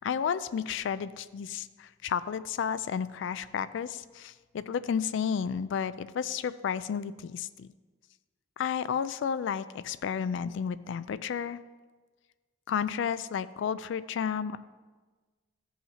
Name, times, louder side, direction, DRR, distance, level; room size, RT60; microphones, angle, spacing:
voice 1, 0.0-7.7 8.6-11.6 12.7-14.6, left 7 dB, 70° left, 15 dB, 0.3 m, -32 dB
15.5 x 5.6 x 2.8 m, 1.3 s
head